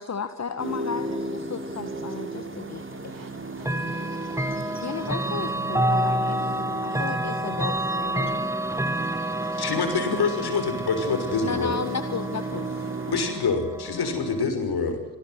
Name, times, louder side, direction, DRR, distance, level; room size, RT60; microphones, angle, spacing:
voice 1, 0.0-3.3 4.8-8.5 11.4-12.9, left 5 dB, 35° left, 10 dB, 1.9 m, -34 dB
sound 1, 0.6-13.2, right 2 dB, 25° right, 4.4 m, -35 dB
Chime / Clock, 3.6-14.4, right 1 dB, 5° right, 2.0 m, -29 dB
voice 2, 3.6-5.1 6.9-7.1 8.7-9.6, right 5 dB, 45° right, 9 dB, 5.5 m, -50 dB
voice 3, 9.6-11.8 13.1-15.0, left 4 dB, 55° left, 7 dB, 6.3 m, -26 dB
27.0 x 19.5 x 8.1 m, 1.0 s
hypercardioid pair, 40°, 47 cm